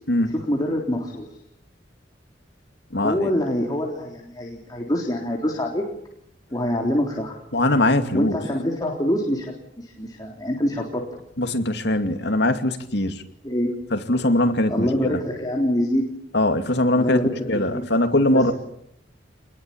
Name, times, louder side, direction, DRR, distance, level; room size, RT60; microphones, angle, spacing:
voice 1, 0.3-1.3 3.0-5.8 6.5-7.4 8.1-11.0 13.4-13.7 14.7-16.1 16.9-17.9 18.3-18.5, left 1 dB, 20° left, 0 dB, 3.8 m, -25 dB
voice 2, 2.9-3.3 7.5-8.4 11.4-13.2 13.9-14.9 15.1-15.2 16.3-17.2 17.5-18.5, left 1 dB, 65° left, 7 dB, 2.5 m, -21 dB
28.0 x 21.0 x 8.8 m, 0.73 s
head